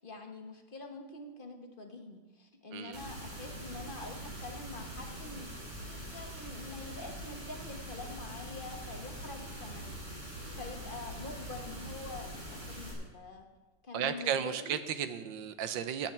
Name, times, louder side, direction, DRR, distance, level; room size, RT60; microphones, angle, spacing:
voice 1, 0.0-13.4 13.8-14.8, left 3 dB, 35° left, 4 dB, 1.1 m, -46 dB
sound 1, 2.9-12.9, right 1 dB, 40° right, 3.2 m, -43 dB
voice 2, 13.9-16.1, right 8 dB, 80° right, 11 dB, 1.5 m, -34 dB
16.0 x 9.6 x 4.4 m, 1.2 s
omnidirectional pair, 2.0 m